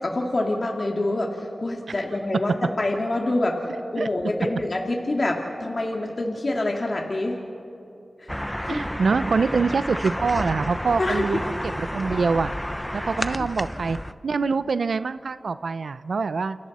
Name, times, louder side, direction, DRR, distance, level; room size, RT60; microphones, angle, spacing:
voice 1, 0.0-1.3 1.6-3.6 3.9-7.3 8.6-8.8 11.0-11.2, left 2 dB, 55° left, 0 dB, 2.3 m, -26 dB
sound 1, 8.3-14.1, equal, 5° left, 0.8 m, -31 dB
voice 2, 8.7-12.5 12.9-14.0 14.2-16.6, right 4 dB, 85° right, 13 dB, 0.5 m, -25 dB
29.0 x 29.0 x 4.2 m, 2.7 s
cardioid pair, 50°, 0 cm